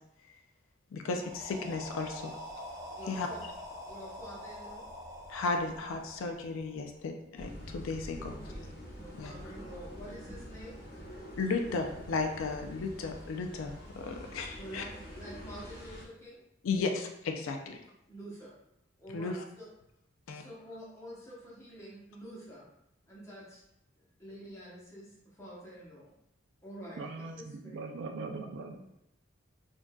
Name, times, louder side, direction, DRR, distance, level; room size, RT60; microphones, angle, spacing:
voice 1, 0.9-2.3 3.1-3.3 5.3-8.3 9.2-9.4 11.4-14.8 16.6-17.8 19.1-19.4 20.3-20.4, left 4 dB, 70° left, 4 dB, 0.4 m, -34 dB
sound 1, 1.1-7.0, left 1 dB, 20° right, 0.6 m, -45 dB
voice 2, 2.9-3.4 3.8-4.9 8.2-10.8 14.6-16.4 17.8-18.5 19.0-19.7 20.3-22.6 23.1-23.6 24.0-26.1 26.6-27.0 27.3-27.8, equal, 15° left, -6 dB, 0.9 m, -48 dB
sound 2, 7.4-16.0, equal, 50° left, 0.9 m, -46 dB
voice 3, 27.0-28.8, right 3 dB, 60° right, 4 dB, 0.4 m, -40 dB
3.6 x 2.6 x 2.2 m, 0.81 s
head